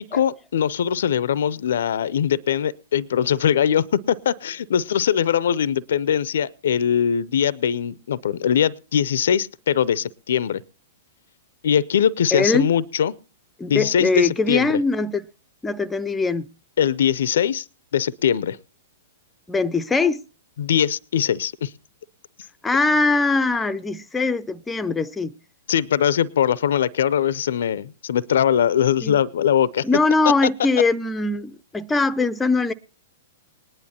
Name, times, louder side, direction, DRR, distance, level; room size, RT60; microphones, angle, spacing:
voice 1, 0.0-10.6 11.6-13.1 13.7-14.8 16.8-17.6 17.9-18.6 20.6-21.7 25.7-29.8, left 9 dB, 65° left, 0.5 m, -21 dB
voice 2, 12.3-12.7 13.6-15.2 15.6-16.5 19.5-20.2 22.6-25.3 29.0-29.2 29.8-32.7, left 3 dB, 10° left, 0.5 m, -21 dB
19.5 x 10.5 x 2.7 m
hypercardioid pair, 110°, 0 cm